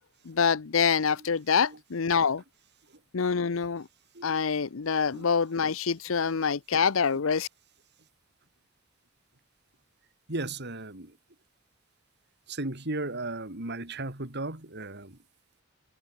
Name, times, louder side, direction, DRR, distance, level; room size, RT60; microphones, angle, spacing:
voice 1, 0.3-2.4 3.1-3.9 4.2-7.5, left 6 dB, 75° left, 0.7 m, -26 dB
voice 2, 10.3-11.2 12.5-15.2, right 2 dB, 55° right, 3.9 m, -35 dB
head